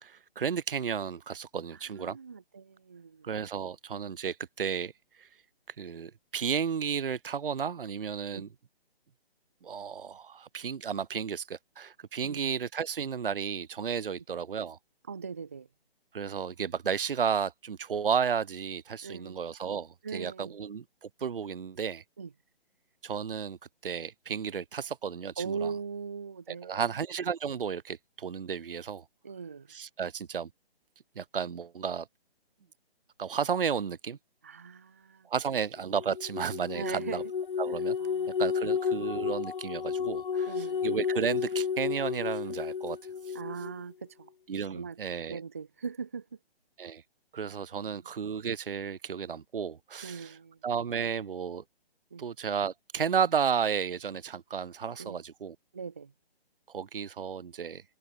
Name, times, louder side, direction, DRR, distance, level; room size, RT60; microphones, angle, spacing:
voice 1, 0.0-2.2 3.2-4.9 5.2-5.3 5.8-8.5 9.6-14.8 16.1-22.0 23.0-25.7 26.5-29.0 29.7-30.5 31.2-32.1 33.2-34.2 35.3-37.2 37.6-38.0 38.4-43.0 43.3-43.4 44.5-45.4 46.8-47.0 47.3-50.3 50.6-51.6 52.2-55.5 56.7-57.8, right 7 dB, 60° right, 1.1 m, -33 dB
voice 2, 1.7-3.3 8.3-8.5 12.2-12.4 15.1-15.7 19.0-19.4 20.0-20.6 22.2-22.3 25.4-26.9 29.2-29.7 34.4-35.3 36.7-37.3 38.0-38.4 40.4-40.9 43.3-44.3 44.7-45.0 45.3-46.4 47.5-48.1 50.0-50.6 52.1-52.2 55.0-55.2 55.7-56.1, right 5 dB, 15° right, 0.7 m, -40 dB
sound 1, 35.9-43.7, left 6 dB, 55° left, 1.1 m, -32 dB
hypercardioid pair, 175°, 31 cm